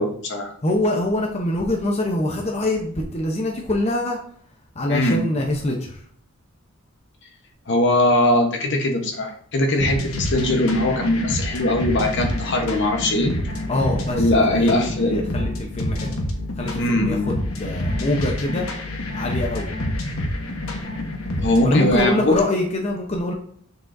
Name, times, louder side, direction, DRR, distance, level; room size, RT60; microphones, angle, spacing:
voice 1, 0.0-0.5 4.9-5.2 7.7-13.4 14.2-15.2 16.8-17.3 21.4-22.4, left 1 dB, 55° left, 4 dB, 1.1 m, -20 dB
voice 2, 0.6-4.2 4.7-6.0 13.7-16.1 16.6-18.7 19.1-19.7 21.6-23.3, left 1 dB, 30° left, 1 dB, 0.8 m, -24 dB
sound 1, 9.8-21.8, left 1 dB, 80° left, 1.3 m, -28 dB
7.1 x 6.2 x 2.6 m, 0.62 s
head